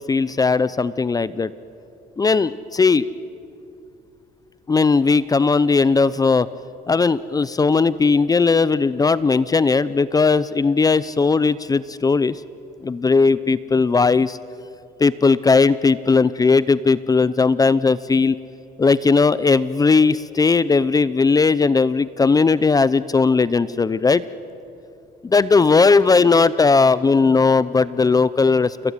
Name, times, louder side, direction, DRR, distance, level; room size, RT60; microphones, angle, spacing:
voice 1, 0.0-1.5 2.2-3.1 4.7-6.5 6.9-12.4 12.8-14.4 15.0-18.4 18.8-24.2 25.2-28.8, left 4 dB, 20° left, 17 dB, 0.6 m, -17 dB
29.0 x 19.5 x 9.6 m, 2.6 s
cardioid pair, 110°, 17 cm